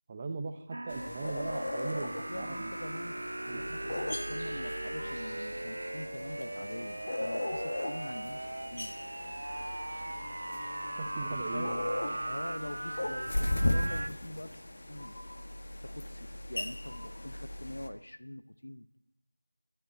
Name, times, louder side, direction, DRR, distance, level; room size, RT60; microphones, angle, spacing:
voice 1, 0.1-2.7 3.5-3.6 11.0-11.8 12.0-12.1, right 3 dB, 15° right, 7 dB, 0.9 m, -39 dB
sound 1, 0.7-14.1, right 1 dB, 60° right, 0.6 m, -39 dB
sound 2, 0.9-17.9, left 1 dB, 45° left, 1.5 m, -38 dB
voice 2, 1.0-1.9 2.3-3.1 3.4-8.9 11.2-11.7 12.2-15.2 15.8-18.9, left 1 dB, 80° left, 11 dB, 1.0 m, -44 dB
Bowed string instrument, 10.1-14.8, left 2 dB, 20° left, 1.2 m, -52 dB
27.0 x 12.5 x 4.2 m, 0.78 s
figure-of-eight pair, 175°, 0 cm